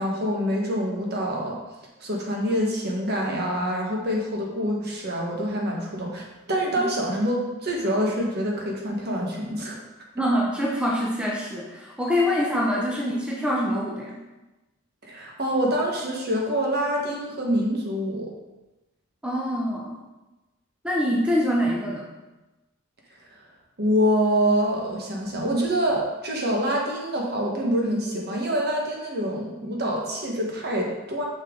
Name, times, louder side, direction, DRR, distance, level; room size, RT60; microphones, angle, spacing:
voice 1, 0.0-1.6 2.0-9.8 15.0-18.3 23.8-31.2, equal, 50° right, -1 dB, 1.4 m, -26 dB
voice 2, 10.1-14.2 19.2-20.0 20.8-22.1, equal, 5° right, -4 dB, 0.7 m, -25 dB
6.5 x 5.8 x 3.9 m, 1.1 s
head